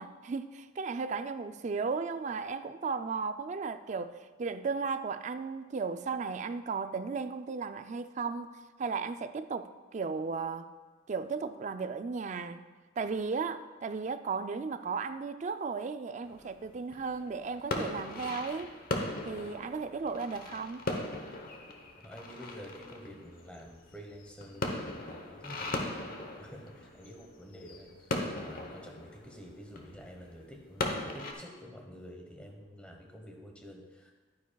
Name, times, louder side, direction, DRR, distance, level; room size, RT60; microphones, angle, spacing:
voice 1, 0.0-8.5 8.8-10.7 11.1-12.6 13.0-18.8 19.2-20.9, right 4 dB, 40° right, 10 dB, 0.3 m, -35 dB
sound 1, 16.2-31.3, left 2 dB, 50° left, 0.9 m, -38 dB
voice 2, 22.0-25.8 26.4-34.1, equal, 5° left, 1 dB, 1.0 m, -49 dB
11.5 x 9.4 x 2.3 m, 1.3 s
head